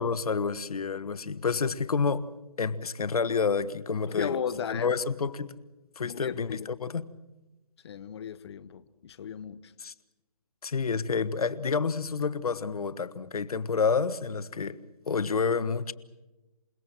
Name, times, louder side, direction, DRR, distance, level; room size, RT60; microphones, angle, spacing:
voice 1, 0.0-2.2 2.6-4.4 4.7-5.5 6.0-7.0 9.8-9.9 10.6-14.8 15.1-15.9, left 5 dB, 70° left, 1.4 m, -29 dB
voice 2, 4.1-4.9 6.0-6.7 7.8-9.7, left 8 dB, 45° left, 0.9 m, -35 dB
28.5 x 17.5 x 7.7 m
hypercardioid pair, 155°, 19 cm